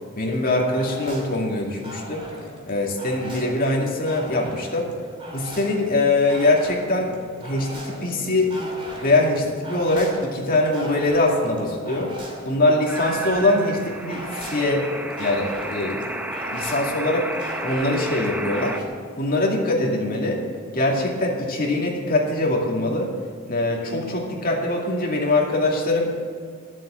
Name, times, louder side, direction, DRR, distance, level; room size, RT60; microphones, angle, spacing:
voice 1, 0.1-2.2 2.7-4.9 5.3-7.1 7.4-8.5 9.0-12.1 12.4-14.9 15.2-16.0 16.5-17.3 17.6-18.8 19.2-20.4 20.7-23.1 23.5-26.1, left 2 dB, 45° left, -1 dB, 2.3 m, -22 dB
sound 1, 0.7-18.8, equal, 25° right, 2.4 m, -38 dB
sound 2, 12.8-18.8, right 1 dB, 5° right, 0.6 m, -32 dB
12.5 x 7.6 x 7.8 m, 2.1 s
head